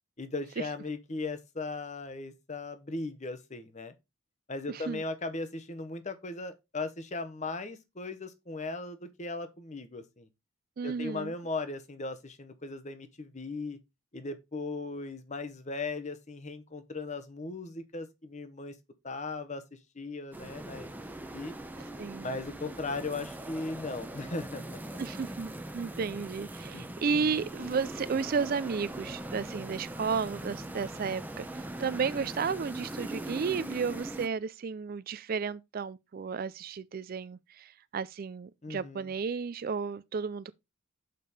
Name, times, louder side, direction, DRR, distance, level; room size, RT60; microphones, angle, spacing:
voice 1, 0.2-3.9 4.5-10.3 10.8-13.8 14.1-18.7 19.0-20.9 21.3-21.5 22.2-24.8 26.7-26.9 38.6-39.1, left 3 dB, 35° left, 0.9 m, -38 dB
voice 2, 4.7-5.0 10.8-11.3 22.0-22.4 25.0-40.5, right 5 dB, 45° right, 0.3 m, -33 dB
sound 1, 20.3-34.3, right 1 dB, 10° right, 0.6 m, -41 dB
6.7 x 5.2 x 4.1 m
head